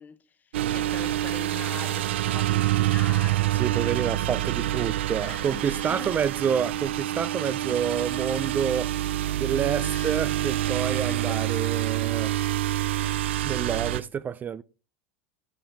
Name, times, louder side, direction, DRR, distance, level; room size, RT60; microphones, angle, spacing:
voice 1, 0.0-4.4 4.8-4.9 5.2-6.3 7.4-7.8 9.8-10.2 10.7-11.5 13.0-13.2, left 6 dB, 30° left, 1.0 m, -43 dB
sound 1, 0.5-14.0, right 14 dB, 85° right, 0.4 m, -27 dB
voice 2, 3.6-9.0 9.3-12.3 13.4-14.6, right 8 dB, 30° right, 0.4 m, -28 dB
11.0 x 8.5 x 3.4 m
hypercardioid pair, 100°, 6 cm